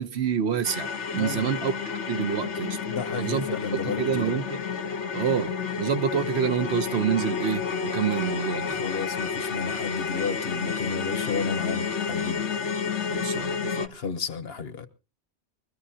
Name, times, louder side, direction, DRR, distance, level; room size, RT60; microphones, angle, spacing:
voice 1, 0.0-2.8 3.2-3.5 3.8-4.6 5.1-5.5 5.8-7.6 7.9-8.8 13.1-13.9, right 8 dB, 70° right, 1.1 m, -27 dB
sound 1, 0.6-13.9, left 6 dB, 85° left, 1.3 m, -30 dB
voice 2, 1.1-1.5 2.9-4.4 8.7-12.5 13.9-14.9, left 5 dB, 60° left, 1.2 m, -32 dB
22.5 x 14.0 x 2.8 m
omnidirectional pair, 1.2 m